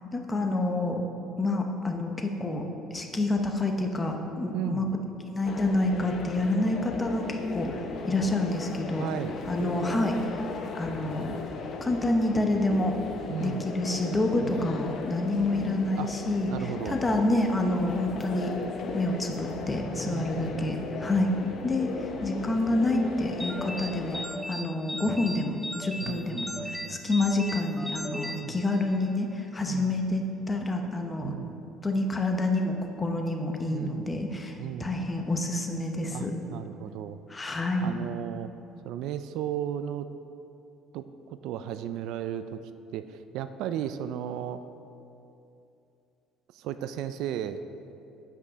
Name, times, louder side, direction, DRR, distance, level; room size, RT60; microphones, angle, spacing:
voice 1, 0.1-1.0 1.4-2.6 2.9-4.9 5.3-9.1 9.5-10.4 10.7-11.4 11.8-12.9 13.4-18.5 18.9-21.3 21.6-24.2 24.5-30.2 30.5-31.3 31.8-36.3 37.3-38.0, left 2 dB, 20° left, 3 dB, 0.8 m, -28 dB
voice 2, 4.5-4.9 9.0-9.4 13.3-13.7 14.4-14.7 16.0-16.1 16.5-17.0 20.0-21.7 26.0-27.0 28.3-28.6 29.7-30.0 31.2-31.6 33.7-34.2 34.6-35.0 36.1-37.2 37.8-38.5 38.8-40.1 40.9-41.1 41.4-42.6 42.9-44.6 46.5-47.6, right 10 dB, 75° right, 11 dB, 0.3 m, -35 dB
sound 1, 5.4-24.2, left 4 dB, 50° left, 0.7 m, -37 dB
sound 2, 23.4-29.2, left 1 dB, ahead, 0.4 m, -37 dB
8.5 x 5.5 x 5.0 m, 2.8 s
cardioid pair, 125°, 0 cm